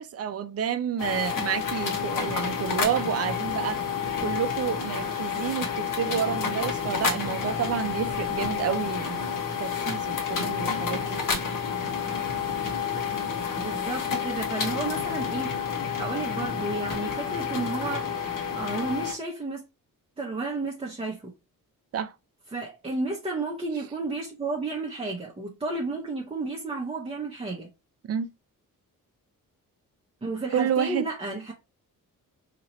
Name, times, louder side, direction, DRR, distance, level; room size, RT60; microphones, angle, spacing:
voice 1, 0.0-3.9 4.2-9.3 9.6-11.2 21.9-22.1 28.1-28.3 30.5-31.1, right 8 dB, 45° right, 0.5 m, -29 dB
sound 1, 1.0-19.1, left 6 dB, 65° left, 1.2 m, -29 dB
voice 2, 13.6-15.5 16.0-18.2 18.5-19.6 20.2-21.3 22.5-27.7 30.2-31.5, right 3 dB, 15° right, 0.8 m, -32 dB
2.9 x 2.9 x 3.9 m
wide cardioid pair, 115°, 34 cm